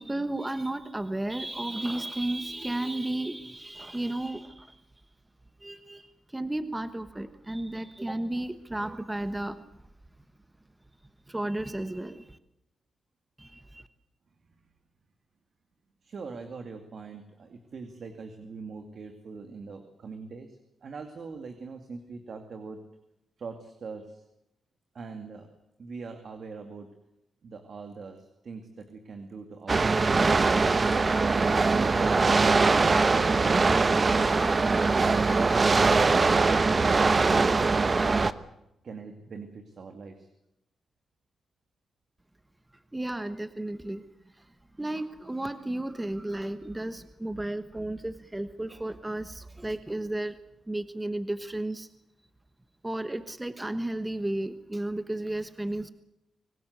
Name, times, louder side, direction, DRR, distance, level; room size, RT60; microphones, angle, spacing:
voice 1, 0.0-4.8 5.6-9.8 11.3-12.4 13.4-13.9 42.9-44.0 44.3-44.5 44.8-50.4 50.7-51.9 52.8-55.9, right 1 dB, 15° right, 11 dB, 1.2 m, -33 dB
voice 2, 16.0-22.8 23.4-24.2 24.9-25.5 25.8-26.9 27.4-31.2 31.7-34.4 38.8-40.3, right 4 dB, 55° right, 6 dB, 2.4 m, -42 dB
sound 1, 29.7-38.3, right 4 dB, 35° right, 1.0 m, -22 dB
25.0 x 18.5 x 8.1 m, 0.84 s
cardioid pair, 100°, 0 cm